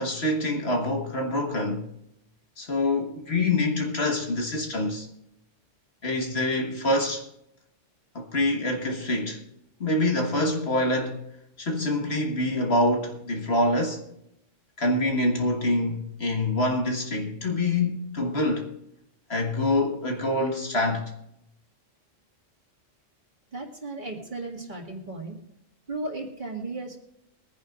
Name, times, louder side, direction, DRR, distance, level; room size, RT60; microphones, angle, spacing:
voice 1, 0.0-1.9 2.6-5.1 6.0-7.3 8.2-9.4 9.8-11.2 11.6-14.0 14.8-18.7 19.3-21.1, left 1 dB, 55° left, 1.8 m, -26 dB
voice 2, 23.5-25.4 25.9-27.0, right 2 dB, 40° right, 2.2 m, -35 dB
22.5 x 9.9 x 2.5 m
omnidirectional pair, 1.3 m